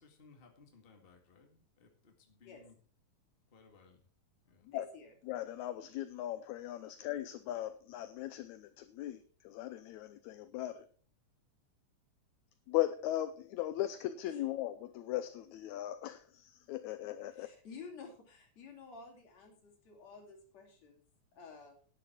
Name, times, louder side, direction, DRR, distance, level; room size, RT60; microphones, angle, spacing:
voice 1, 0.0-2.8 3.5-4.0 4.4-4.7, left 4 dB, 20° left, 3 dB, 1.8 m, -62 dB
voice 2, 4.7-5.1 17.4-21.0 21.3-21.8, left 4 dB, 60° left, 1 dB, 3.8 m, -52 dB
voice 3, 5.2-10.9 12.7-17.5, left 14 dB, 75° left, 12 dB, 1.9 m, -38 dB
11.0 x 10.0 x 4.5 m, 0.41 s
omnidirectional pair, 3.5 m